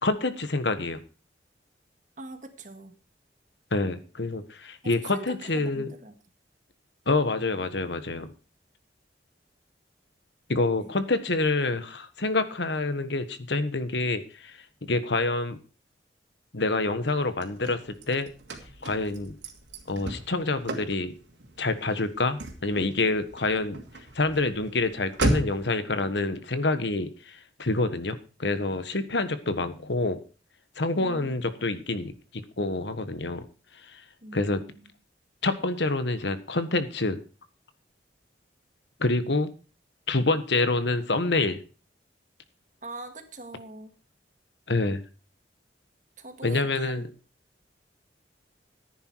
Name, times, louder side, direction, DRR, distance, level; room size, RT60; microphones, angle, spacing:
voice 1, 0.0-1.0 3.7-5.9 7.1-8.3 10.5-15.6 16.5-18.3 18.8-19.3 19.9-21.1 21.6-23.8 24.1-30.2 30.8-33.4 33.8-34.0 34.3-34.6 35.4-37.2 39.0-39.5 40.1-41.6 44.7-45.0 46.4-47.1, left 2 dB, 75° left, 11 dB, 1.4 m, -27 dB
voice 2, 2.2-2.9 5.0-6.1 10.7-10.9 30.9-31.4 34.2-34.9 42.8-43.9 46.2-47.0, right 2 dB, 45° right, 7 dB, 1.8 m, -43 dB
Car / Slam, 17.1-25.8, right 1 dB, 85° right, 2.7 m, -35 dB
14.5 x 10.0 x 4.7 m, 0.35 s
head